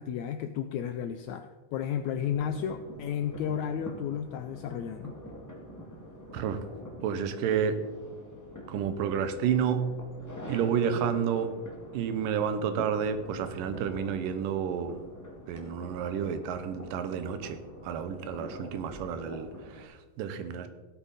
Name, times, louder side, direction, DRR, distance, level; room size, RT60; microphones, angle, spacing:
voice 1, 0.0-5.1, left 8 dB, 85° left, 8 dB, 1.6 m, -33 dB
sound 1, 2.2-19.8, equal, 15° left, 0.6 m, -45 dB
voice 2, 6.3-6.6 7.0-7.8 8.7-9.9 10.5-11.5 11.9-15.0 15.5-20.7, right 7 dB, 90° right, 10 dB, 2.5 m, -30 dB
16.0 x 8.4 x 4.1 m, 1.3 s
omnidirectional pair, 3.8 m